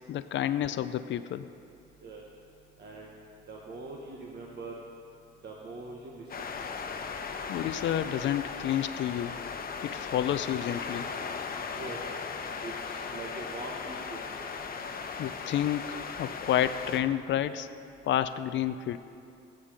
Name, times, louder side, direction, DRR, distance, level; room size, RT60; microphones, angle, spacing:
voice 1, 0.1-1.4 7.5-9.4 9.8-11.1 15.2-17.7 18.1-19.0, left 11 dB, 70° left, 12 dB, 0.5 m, -30 dB
voice 2, 2.8-3.1 3.5-4.7 5.4-6.2 11.7-12.2 12.6-14.2, right 3 dB, 55° right, -2 dB, 1.5 m, -42 dB
sound 1, 6.3-17.0, left 5 dB, 50° left, 1.0 m, -37 dB
14.5 x 9.8 x 5.1 m, 2.6 s
cardioid pair, 90°, 20 cm